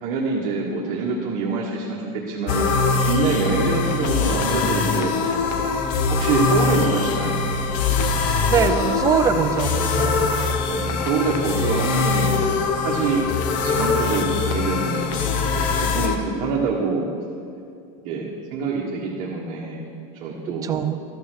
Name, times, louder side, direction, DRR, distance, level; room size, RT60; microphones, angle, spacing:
voice 1, 0.0-2.8 3.0-5.4 6.1-7.3 10.6-12.5 12.8-13.3 13.6-15.2 15.5-17.0 18.0-19.8 20.1-20.7, right 4 dB, 45° right, -3 dB, 1.4 m, -25 dB
sound 1, 2.5-16.2, left 4 dB, 45° left, 0.9 m, -22 dB
voice 2, 8.5-10.3 20.6-21.0, right 7 dB, 20° right, 8 dB, 0.4 m, -22 dB
13.5 x 6.8 x 6.4 m, 2.5 s
supercardioid pair, 160°, 18 cm